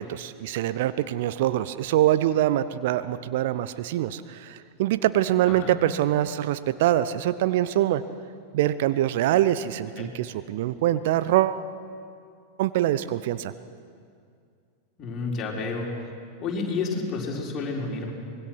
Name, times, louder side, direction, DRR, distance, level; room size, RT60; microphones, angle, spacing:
voice 1, 0.0-8.0 8.5-11.6 12.6-13.5, right 13 dB, 50° right, 14 dB, 0.6 m, -24 dB
voice 2, 15.0-15.9 16.4-18.1, left 4 dB, 30° left, -2 dB, 4.4 m, -30 dB
25.0 x 21.0 x 6.2 m, 2.3 s
figure-of-eight pair, 90°, 0 cm